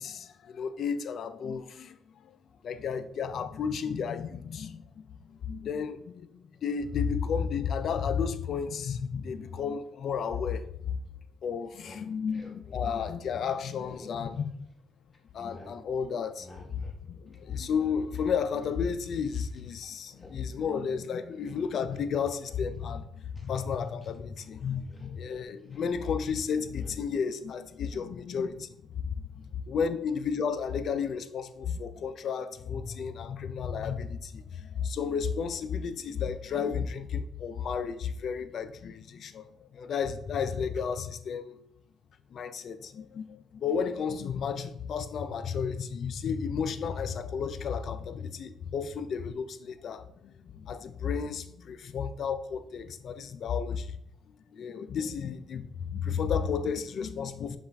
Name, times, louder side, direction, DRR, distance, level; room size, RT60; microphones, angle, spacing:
voice 1, 0.0-2.4 2.6-11.0 11.4-14.5 15.3-41.6 42.3-54.0 54.5-57.6, left 6 dB, 60° left, 0.3 m, -33 dB
sound 1, 11.7-14.8 15.1-15.8 16.4-17.0 17.3-19.7 20.0-20.4 20.7-20.9 21.3-21.9 22.3-24.4 24.7-25.9 26.8-27.0, left 2 dB, 25° left, 1.0 m, -53 dB
5.6 x 2.4 x 3.3 m
cardioid pair, 90°, 0 cm